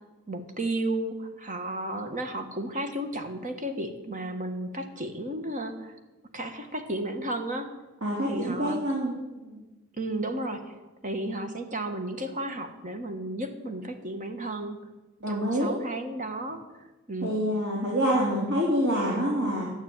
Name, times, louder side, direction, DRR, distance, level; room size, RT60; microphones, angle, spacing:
voice 1, 0.3-5.9 6.3-7.7 8.3-8.8 10.0-14.8 15.3-16.6 17.1-17.3, right 1 dB, 35° right, 7 dB, 1.5 m, -33 dB
voice 2, 8.0-9.6 15.2-15.7 17.2-19.6, equal, 75° right, -4 dB, 3.5 m, -26 dB
13.0 x 8.8 x 9.0 m, 1.1 s
head